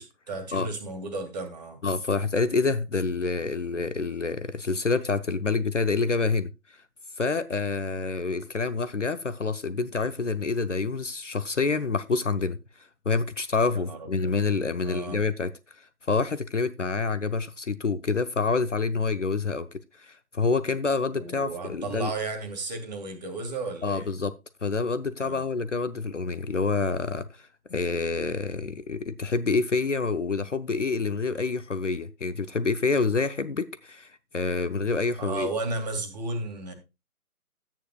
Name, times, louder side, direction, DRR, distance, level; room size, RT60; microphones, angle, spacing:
voice 1, 0.0-1.8 13.7-14.3 14.8-15.2 21.1-24.1 25.2-25.4 35.2-36.7, right 3 dB, 25° right, 2.1 m, -34 dB
voice 2, 1.8-6.5 7.2-15.5 15.8-22.1 23.8-24.3 24.6-35.5, left 4 dB, 50° left, 0.8 m, -27 dB
13.5 x 9.1 x 2.3 m
figure-of-eight pair, 150°, 46 cm